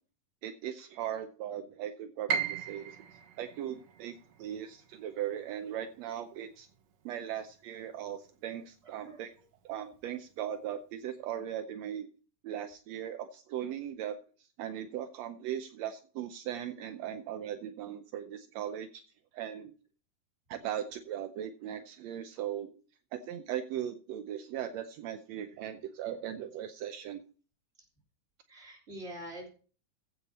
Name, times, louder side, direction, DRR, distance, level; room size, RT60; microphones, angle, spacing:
voice 1, 0.4-3.0 3.4-6.7 7.0-9.3 9.6-12.1 12.4-19.0 19.3-19.7 20.5-22.7 23.1-27.2, right 10 dB, 80° right, 9 dB, 1.5 m, -38 dB
Piano, 2.3-8.2 8.6-9.7 10.1-10.2 10.9-11.3, right 7 dB, 60° right, 2.0 m, -39 dB
voice 2, 8.8-9.2 28.5-29.5, equal, 20° right, 1 dB, 3.2 m, -45 dB
15.0 x 7.1 x 4.2 m, 0.39 s
omnidirectional pair, 3.9 m